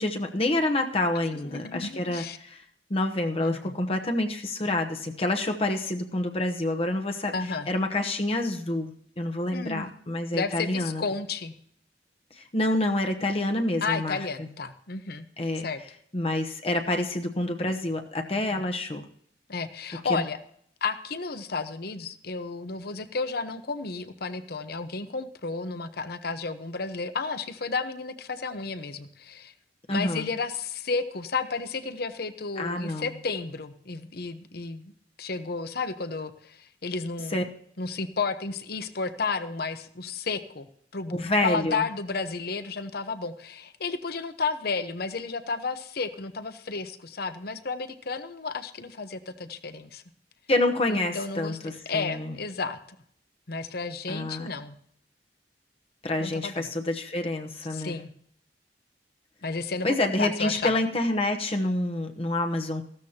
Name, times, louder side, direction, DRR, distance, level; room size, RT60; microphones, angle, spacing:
voice 1, 0.0-2.6 2.9-7.3 7.7-11.0 12.3-14.5 15.4-15.7 16.1-19.0 19.9-20.2 29.9-30.3 32.6-33.1 37.3-37.4 41.1-41.8 50.5-52.3 54.1-54.5 56.0-58.0 59.8-62.8, left 1 dB, 35° left, 4 dB, 1.0 m, -28 dB
voice 2, 1.4-2.4 3.4-3.7 7.3-7.7 9.5-9.9 10.3-11.5 13.8-15.3 15.6-15.8 18.5-18.6 19.5-20.4 20.8-29.5 29.9-34.9 35.2-37.5 37.8-40.7 40.9-41.1 41.4-50.0 50.9-51.6 51.9-52.8 53.5-54.7 56.2-56.7 57.7-58.1 59.4-60.7, left 4 dB, 60° left, 11 dB, 0.9 m, -32 dB
15.0 x 13.0 x 2.9 m, 0.66 s
head